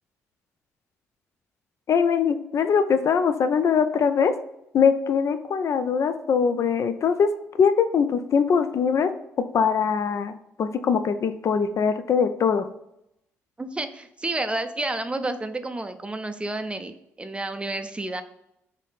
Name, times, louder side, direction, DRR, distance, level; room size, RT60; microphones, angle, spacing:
voice 1, 1.9-4.3 4.7-9.1 9.5-12.7, left 6 dB, 50° left, 10 dB, 0.3 m, -22 dB
voice 2, 13.6-18.2, right 2 dB, 15° right, 9 dB, 0.4 m, -30 dB
3.4 x 2.7 x 4.0 m, 0.81 s
hypercardioid pair, 50°, 6 cm